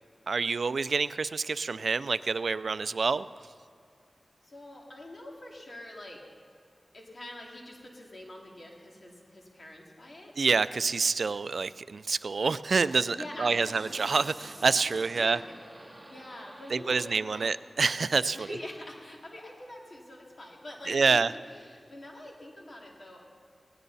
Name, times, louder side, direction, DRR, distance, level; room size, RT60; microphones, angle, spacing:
voice 1, 0.3-3.2 10.4-15.4 16.7-18.5 20.9-21.3, right 4 dB, 80° right, 15 dB, 0.3 m, -27 dB
voice 2, 4.4-6.2 6.9-10.3 13.1-14.0 14.8-15.4 16.1-17.6 18.3-21.2 21.4-23.3, left 1 dB, 55° left, -1 dB, 2.7 m, -45 dB
sound 1, 12.6-17.7, right 1 dB, 20° right, 2.3 m, -49 dB
18.5 x 16.0 x 4.1 m, 2.3 s
wide cardioid pair, 55°, 0 cm